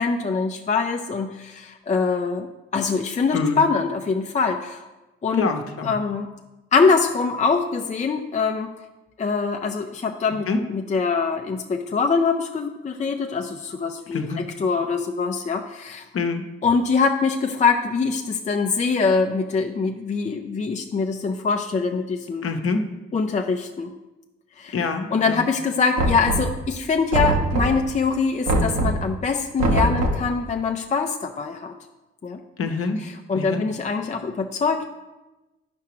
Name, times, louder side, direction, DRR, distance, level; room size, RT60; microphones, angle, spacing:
voice 1, 0.0-4.9 5.2-5.5 5.8-6.3 6.7-8.7 9.2-16.0 16.6-22.5 23.1-23.9 24.6-24.7 25.1-31.7 32.2-32.4 33.3-34.9, left 4 dB, 25° left, 3 dB, 0.6 m, -23 dB
voice 2, 5.4-5.9 10.5-10.6 14.1-14.4 16.1-16.4 22.4-22.8 24.7-25.5 32.6-33.0 33.3-33.6, left 4 dB, 50° left, 5 dB, 0.9 m, -25 dB
Knock, 26.0-26.7 27.1-27.9 28.5-29.1 29.6-30.3, right 1 dB, 65° right, 1.2 m, -22 dB
9.4 x 5.6 x 3.1 m, 1.1 s
hypercardioid pair, 45°, 29 cm